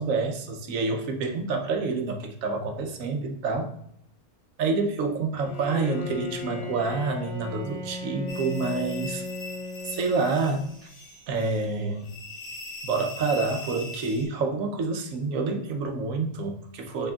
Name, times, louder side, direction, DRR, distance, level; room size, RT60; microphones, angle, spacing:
voice 1, 0.0-3.7 4.6-9.2 9.8-10.7 11.3-12.1 12.8-17.1, right 4 dB, 80° right, 5 dB, 1.1 m, -28 dB
Bowed string instrument, 5.4-10.8, left 3 dB, 30° left, 1.5 m, -37 dB
sound 1, 8.3-14.2, left 3 dB, 70° left, 1.4 m, -41 dB
5.9 x 3.6 x 2.3 m, 0.70 s
omnidirectional pair, 1.4 m